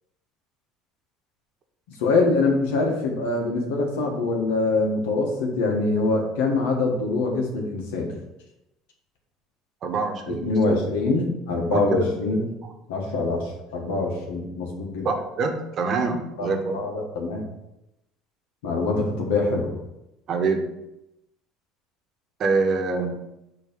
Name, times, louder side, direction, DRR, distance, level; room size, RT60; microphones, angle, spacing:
voice 1, 2.0-8.1 10.4-12.5 12.9-15.1 16.4-17.5 18.6-19.8, left 3 dB, 90° left, 1 dB, 1.4 m, -24 dB
voice 2, 9.8-10.9 11.7-12.2 12.6-12.7 15.0-16.8 20.3-20.7 22.4-23.2, right 4 dB, 45° right, 5 dB, 1.0 m, -25 dB
6.6 x 3.2 x 5.2 m, 0.89 s
supercardioid pair, 95°, 0 cm